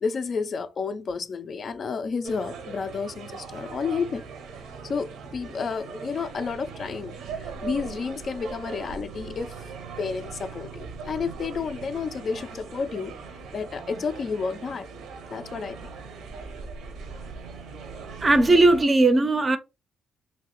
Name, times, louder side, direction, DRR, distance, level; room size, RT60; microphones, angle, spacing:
voice 1, 0.0-4.2 4.8-9.7 10.0-13.2 13.5-14.9 15.3-16.0, left 5 dB, 45° left, 0.3 m, -31 dB
sound 1, 2.2-18.9, right 5 dB, 80° right, 0.7 m, -40 dB
voice 2, 18.2-19.6, right 2 dB, 30° right, 0.5 m, -18 dB
2.9 x 2.7 x 2.9 m
cardioid pair, 90°, 0 cm